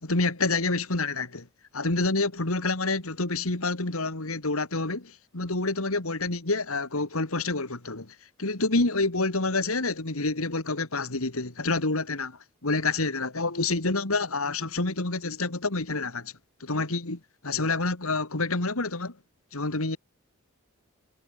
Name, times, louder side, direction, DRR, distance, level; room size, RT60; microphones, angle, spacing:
voice 1, 0.0-1.5 1.7-16.3 16.6-19.2 19.5-20.0, left 3 dB, 85° left, 2.6 m, -28 dB
head